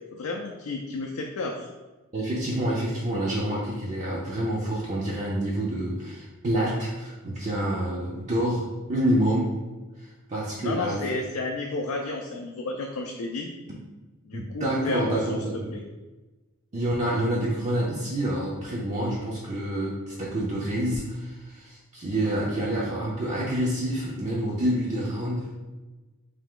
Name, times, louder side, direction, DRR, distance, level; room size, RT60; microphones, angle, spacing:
voice 1, 0.1-1.7 10.6-13.5 14.3-15.4 15.7-15.8, left 3 dB, 65° left, 1 dB, 0.3 m, -32 dB
voice 2, 2.1-9.5 10.0-11.1 14.3-15.7 16.7-25.6, right 1 dB, 30° right, -5 dB, 0.5 m, -28 dB
3.3 x 2.8 x 3.6 m, 1.2 s
head